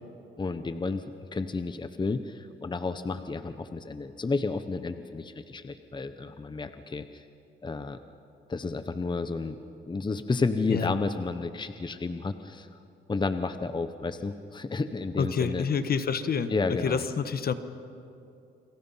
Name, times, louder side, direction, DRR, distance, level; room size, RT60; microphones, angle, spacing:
voice 1, 0.4-1.0 1.3-7.2 7.6-8.0 8.5-9.6 9.9-12.7 13.1-15.7 16.5-17.0, left 3 dB, 25° left, 10 dB, 1.0 m, -31 dB
voice 2, 15.2-16.5 16.8-17.5, left 6 dB, 50° left, 11 dB, 1.4 m, -27 dB
29.5 x 24.5 x 5.8 m, 2.7 s
cardioid pair, 90°, 20 cm